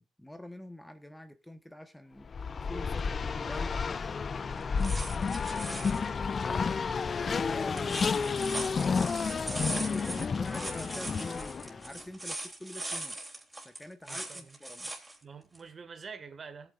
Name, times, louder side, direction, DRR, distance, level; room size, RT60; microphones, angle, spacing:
voice 1, 0.0-2.3 2.7-6.7 7.2-8.8 9.5-13.2 13.6-14.9, left 1 dB, 5° left, 1.2 m, -46 dB
Race car auto racing, 2.2-11.9, left 5 dB, 40° left, 0.5 m, -31 dB
sound 1, 4.6-6.1 7.6-15.2 15.5-15.6, right 2 dB, 10° right, 3.5 m, -40 dB
voice 2, 4.9-5.3 9.9-10.2 14.1-14.6 15.2-16.7, right 5 dB, 45° right, 1.8 m, -47 dB
17.0 x 9.3 x 2.5 m
cardioid pair, 90°, 0 cm